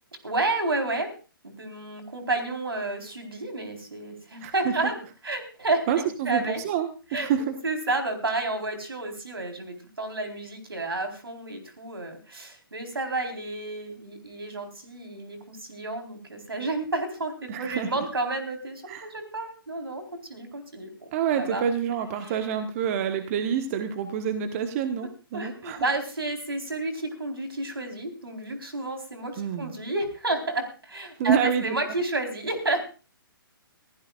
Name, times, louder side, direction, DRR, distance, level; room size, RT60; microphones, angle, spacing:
voice 1, 0.2-1.1 1.4-5.0 5.2-6.6 7.1-7.3 7.6-20.0 20.3-21.1 21.4-21.6 22.2-22.3 25.3-32.8, right 2 dB, 80° right, 5 dB, 4.3 m, -31 dB
voice 2, 4.4-4.7 5.9-7.6 17.5-18.0 18.9-19.1 21.1-25.8 29.4-29.7 31.2-31.7, right 8 dB, 35° right, 8 dB, 1.4 m, -27 dB
24.0 x 15.5 x 2.5 m, 0.35 s
figure-of-eight pair, 130°, 12 cm